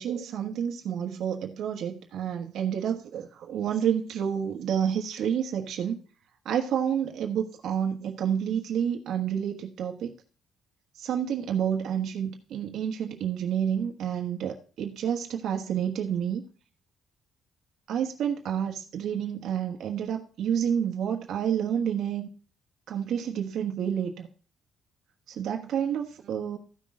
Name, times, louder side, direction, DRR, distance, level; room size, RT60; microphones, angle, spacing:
voice 1, 0.0-6.0 6.4-10.1 10.9-16.4 17.9-22.3 22.9-24.3 25.3-26.6, right 8 dB, 60° right, 3 dB, 1.3 m, -29 dB
14.5 x 6.3 x 3.8 m, 0.40 s
cardioid pair, 175°, 0 cm